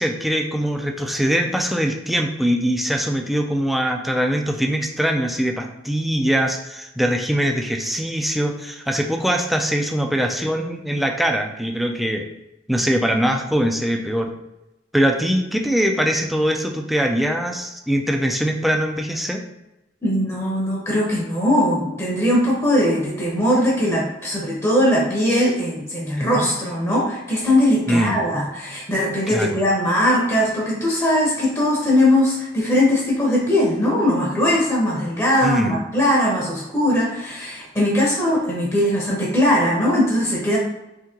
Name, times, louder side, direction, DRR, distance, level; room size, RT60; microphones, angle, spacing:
voice 1, 0.0-12.3 12.7-14.3 14.9-19.4 26.2-26.5 27.9-28.2 29.3-29.6 35.4-35.8, equal, ahead, 2 dB, 0.3 m, -22 dB
voice 2, 20.0-40.6, left 1 dB, 15° left, -4 dB, 0.7 m, -20 dB
3.6 x 2.7 x 2.9 m, 0.95 s
head